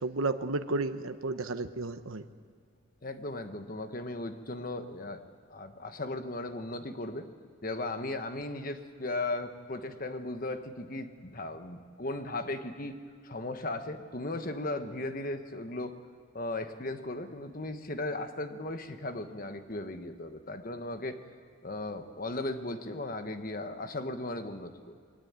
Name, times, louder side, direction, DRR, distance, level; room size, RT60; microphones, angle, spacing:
voice 1, 0.0-2.2, right 3 dB, 75° right, 9 dB, 1.0 m, -32 dB
voice 2, 3.0-5.2 5.5-7.3 7.6-13.0 13.2-16.0 16.3-21.2 21.6-24.9, left 2 dB, 40° left, 8 dB, 1.2 m, -37 dB
22.5 x 19.0 x 8.9 m, 2.1 s
head